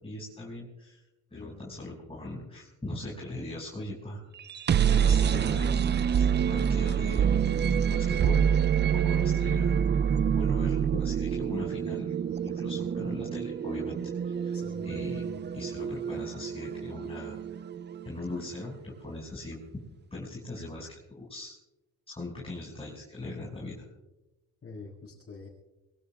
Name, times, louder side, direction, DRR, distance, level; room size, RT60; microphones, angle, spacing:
voice 1, 0.0-1.0 1.3-4.2 4.9-7.3 7.9-8.4 8.9-9.7 10.3-12.2 12.4-14.0 14.2-14.6 14.8-15.2 15.5-17.6 18.0-19.8 20.1-21.6 22.1-23.9, left 2 dB, 20° left, -4 dB, 5.8 m, -40 dB
voice 2, 1.3-1.7 14.5-15.4 24.6-25.5, left 4 dB, 45° left, -5 dB, 6.3 m, -46 dB
sound 1, 4.4-18.2, right 8 dB, 35° right, 0.5 m, -27 dB
25.0 x 23.0 x 2.4 m, 1.0 s
cardioid pair, 90°, 30 cm